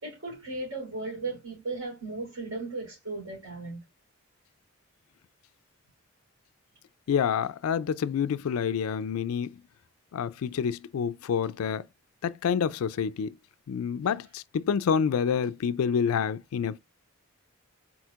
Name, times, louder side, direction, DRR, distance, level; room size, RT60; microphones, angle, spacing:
voice 1, 0.0-3.8 14.0-14.1, right 3 dB, 75° right, 3.2 m, -36 dB
voice 2, 7.1-9.5 10.1-11.9 12.2-13.4 13.7-16.8, left 7 dB, 80° left, 0.3 m, -28 dB
4.4 x 4.2 x 2.4 m
head